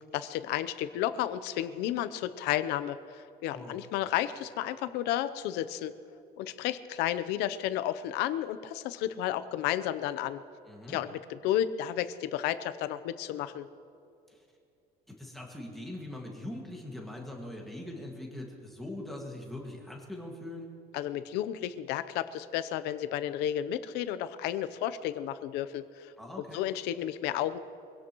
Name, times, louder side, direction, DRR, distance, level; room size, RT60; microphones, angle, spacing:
voice 1, 0.1-5.9 6.4-10.4 10.9-13.7 20.9-26.1 26.5-27.6, left 12 dB, 85° left, 13 dB, 0.7 m, -32 dB
voice 2, 10.7-11.0 14.3-14.4 15.1-20.7 26.2-26.6, left 1 dB, ahead, -2 dB, 1.9 m, -42 dB
24.0 x 17.0 x 3.1 m, 2.6 s
cardioid pair, 175°, 17 cm